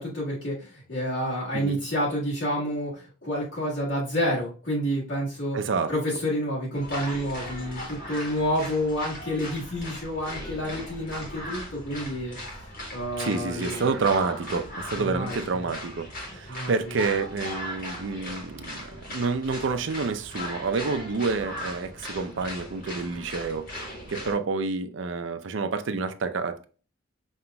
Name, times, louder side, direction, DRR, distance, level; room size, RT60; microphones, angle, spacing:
voice 1, 0.0-5.6 5.9-12.6 12.9-13.8 14.9-15.7 16.5-16.9, equal, 70° left, 1.6 m, -29 dB
voice 2, 5.5-5.9 13.2-26.6, right 4 dB, 75° right, 0.5 m, -29 dB
sound 1, 6.7-24.3, left 1 dB, 45° left, 1.5 m, -38 dB
5.5 x 2.9 x 2.2 m
head